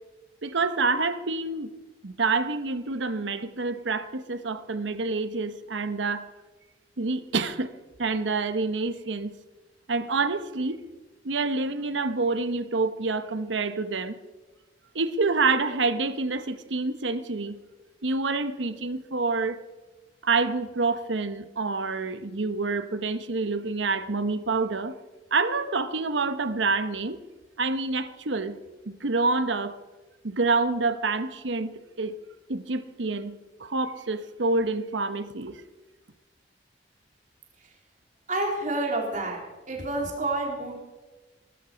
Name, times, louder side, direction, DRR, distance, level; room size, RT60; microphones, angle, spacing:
voice 1, 0.4-1.7 2.0-6.3 7.0-7.7 8.0-9.3 9.9-10.8 11.2-14.2 14.9-17.6 18.0-19.6 20.2-24.9 25.3-27.2 27.6-28.6 28.9-29.8 30.2-32.1 32.5-35.6, right 3 dB, 90° right, 11 dB, 1.0 m, -27 dB
voice 2, 38.3-39.4 39.7-40.8, right 2 dB, 45° right, 0 dB, 3.6 m, -29 dB
20.0 x 12.5 x 5.1 m, 1.2 s
head